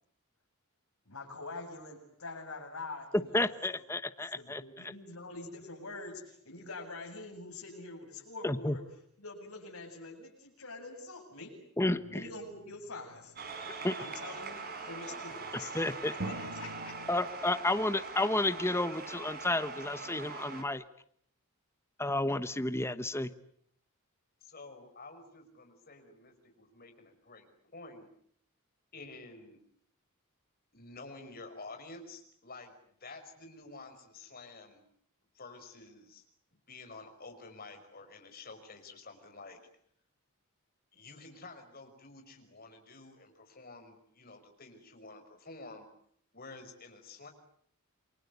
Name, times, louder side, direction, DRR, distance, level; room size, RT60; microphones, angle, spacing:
voice 1, 1.0-3.8 4.3-8.9 9.2-11.6 12.1-13.3 14.0-17.0, left 3 dB, 80° left, 2 dB, 7.9 m, -45 dB
voice 2, 3.3-4.6 8.4-8.8 11.8-12.2 13.8-13.9 15.7-16.1 17.1-20.8 22.0-23.3, left 2 dB, 10° left, 10 dB, 1.1 m, -31 dB
sound 1, 11.9-13.7 16.2-17.1, right 1 dB, 65° right, 2.9 m, -44 dB
sound 2, 13.4-20.6, right 4 dB, 45° right, 4.9 m, -42 dB
voice 3, 24.4-28.1 28.9-29.6 30.7-32.7 33.0-34.8 35.3-36.2 36.7-39.6 40.9-45.9 46.3-47.3, left 3 dB, 45° left, 5 dB, 5.5 m, -50 dB
28.5 x 23.5 x 8.2 m, 0.67 s
head